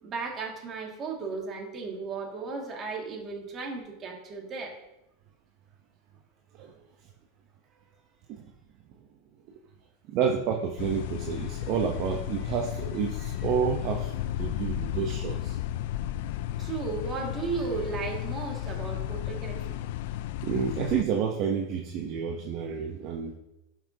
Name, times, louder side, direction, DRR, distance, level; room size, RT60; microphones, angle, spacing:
voice 1, 0.0-4.8 11.6-11.7 16.6-19.8, right 4 dB, 30° right, 0 dB, 2.1 m, -35 dB
voice 2, 10.1-15.6 20.4-23.3, right 7 dB, 50° right, 2 dB, 0.8 m, -30 dB
sound 1, 10.8-21.0, left 12 dB, 65° left, 0.4 m, -33 dB
11.5 x 5.8 x 2.8 m, 0.91 s
supercardioid pair, 125°, 0 cm